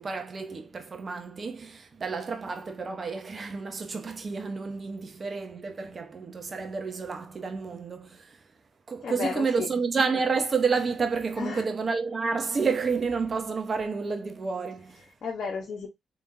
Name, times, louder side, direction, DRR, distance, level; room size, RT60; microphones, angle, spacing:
voice 1, 0.0-8.4 8.9-15.1, right 5 dB, 45° right, 1.0 m, -30 dB
voice 2, 9.0-9.8 11.4-11.6 15.2-15.9, left 5 dB, 65° left, 1.1 m, -33 dB
3.6 x 3.6 x 2.7 m
supercardioid pair, 55°, 0 cm